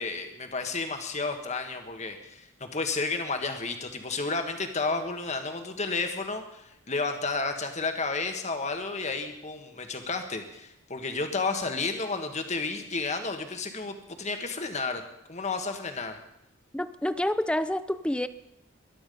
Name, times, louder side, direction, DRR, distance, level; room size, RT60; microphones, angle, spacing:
voice 1, 0.0-15.0 15.3-16.2, left 3 dB, 35° left, 5 dB, 1.7 m, -32 dB
voice 2, 16.7-18.3, left 1 dB, 5° left, 13 dB, 0.5 m, -28 dB
21.0 x 12.0 x 5.4 m, 0.82 s
head